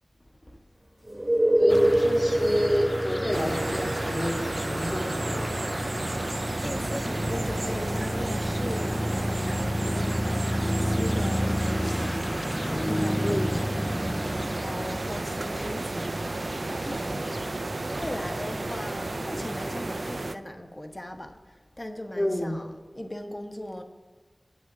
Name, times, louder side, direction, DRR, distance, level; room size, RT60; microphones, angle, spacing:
sound 1, 1.0-12.6 16.9-17.0, right 1 dB, 20° right, 1.0 m, -30 dB
voice 1, 1.6-5.5 13.2-13.6 22.2-22.6, equal, 45° left, 1.9 m, -29 dB
sound 2, 1.7-20.2, equal, 5° left, 0.3 m, -32 dB
sound 3, 3.3-20.3, right 2 dB, 70° right, 0.4 m, -33 dB
voice 2, 6.6-13.7 14.4-21.4 21.8-23.8, left 1 dB, 30° left, 1.0 m, -39 dB
8.5 x 6.4 x 6.1 m
wide cardioid pair, 50°, 0 cm